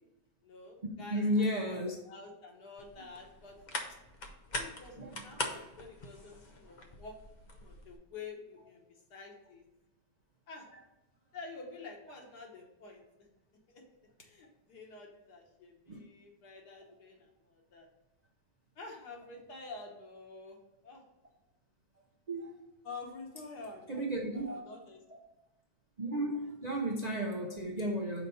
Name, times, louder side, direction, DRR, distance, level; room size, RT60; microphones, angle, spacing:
voice 1, 0.4-1.8 2.1-3.6 4.5-7.2 7.5-9.6 10.5-10.7 11.3-13.3 13.7-13.8 14.2-17.9 18.8-20.6 20.8-21.0 22.8-24.0 24.3-25.0, left 3 dB, 70° left, 0 dB, 1.7 m, -49 dB
voice 2, 1.1-1.9 5.0-5.6 15.9-16.0 22.3-22.5 23.9-24.6 26.0-28.3, equal, 70° right, -1 dB, 0.4 m, -34 dB
sound 1, 2.8-8.0, left 2 dB, 85° left, 0.4 m, -42 dB
5.8 x 4.2 x 5.4 m, 0.95 s
omnidirectional pair, 1.8 m